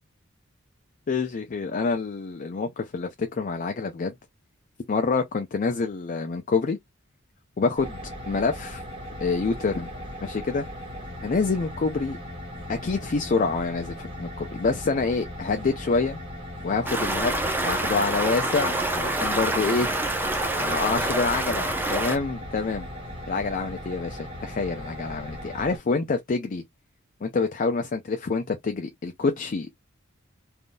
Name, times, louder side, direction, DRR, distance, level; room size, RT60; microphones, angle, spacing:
voice 1, 1.1-4.1 4.9-6.8 7.6-8.0 8.3-8.8 9.2-9.9 10.2-10.6 11.2-12.2 12.7-16.2 16.6-17.3 17.6-19.9 20.6-22.9 23.3-26.6 27.2-29.7, left 4 dB, 40° left, 0.4 m, -27 dB
sound 1, 7.8-25.8, equal, 25° right, 1.4 m, -38 dB
Stream, 16.9-22.2, right 1 dB, 10° right, 0.6 m, -26 dB
3.5 x 2.5 x 2.2 m
head